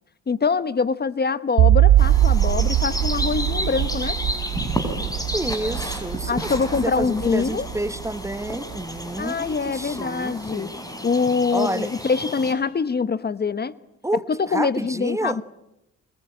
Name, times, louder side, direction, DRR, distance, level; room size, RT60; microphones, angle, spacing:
voice 1, 0.3-4.2 6.3-7.7 9.2-10.7 11.0-13.7 14.3-15.4, left 5 dB, 35° left, 15 dB, 1.1 m, -24 dB
sound 1, 1.6-8.8, right 12 dB, 85° right, 1.3 m, -21 dB
sound 2, 2.0-12.5, left 1 dB, 10° left, 6.2 m, -32 dB
voice 2, 5.3-6.5 6.8-10.7 11.5-11.9 14.0-15.4, right 1 dB, 10° right, 14 dB, 1.1 m, -29 dB
28.0 x 22.5 x 8.9 m, 0.87 s
cardioid pair, 90°, 30 cm